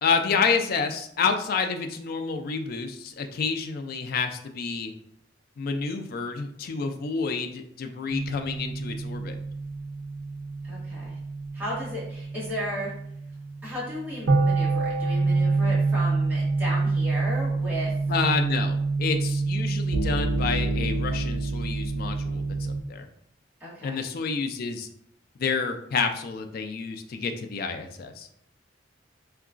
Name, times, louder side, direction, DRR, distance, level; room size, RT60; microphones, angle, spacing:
voice 1, 0.0-4.9 5.6-9.3 18.1-23.1 23.8-24.9 25.4-28.3, left 5 dB, 50° left, 6 dB, 0.3 m, -29 dB
sound 1, 8.1-22.8, right 3 dB, 65° right, 0.5 m, -27 dB
voice 2, 10.6-11.2 11.5-12.9 13.6-17.9 23.6-24.0, equal, 10° right, -7 dB, 1.1 m, -35 dB
3.7 x 2.3 x 2.4 m, 0.70 s
head